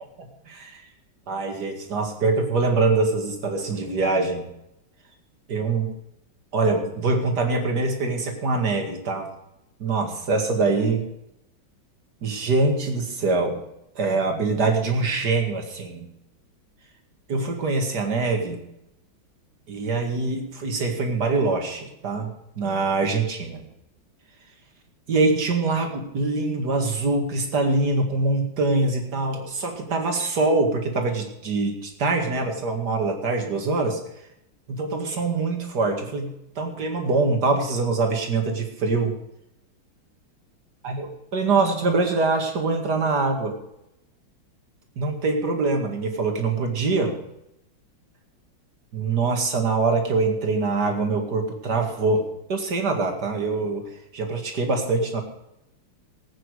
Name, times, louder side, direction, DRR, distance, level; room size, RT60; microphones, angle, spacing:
voice 1, 0.5-0.8 1.3-4.5 5.5-5.9 6.5-9.3 9.8-11.1 12.2-13.6 14.0-16.1 17.3-18.6 19.7-23.6 25.1-34.0 34.7-39.1 40.8-43.6 45.0-47.1 48.9-52.2 52.5-53.8 54.1-55.2, right 3 dB, 55° right, 3 dB, 2.5 m, -24 dB
18.0 x 8.9 x 4.8 m, 0.85 s
omnidirectional pair, 2.2 m